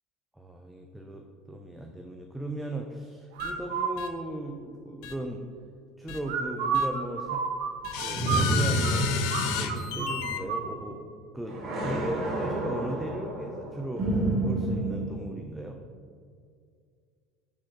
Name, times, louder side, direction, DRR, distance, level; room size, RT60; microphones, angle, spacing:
voice 1, 0.4-5.4 6.0-7.4 8.0-9.1 9.5-11.0 11.3-14.1 14.4-15.8, right 1 dB, 5° right, 2 dB, 0.3 m, -37 dB
sound 1, 3.4-3.5 4.0-4.1 5.0-5.1 6.1-6.2 6.7-6.9 7.8-10.4, left 8 dB, 70° left, 0.4 m, -32 dB
sound 2, 3.4-3.9 6.2-9.0 9.3-9.4 9.7-10.7, right 6 dB, 85° right, 0.5 m, -30 dB
sound 3, 8.1-11.2 11.5-15.0, right 1 dB, 45° right, 1.0 m, -30 dB
5.1 x 3.5 x 2.8 m, 2.2 s
supercardioid pair, 100°, 0 cm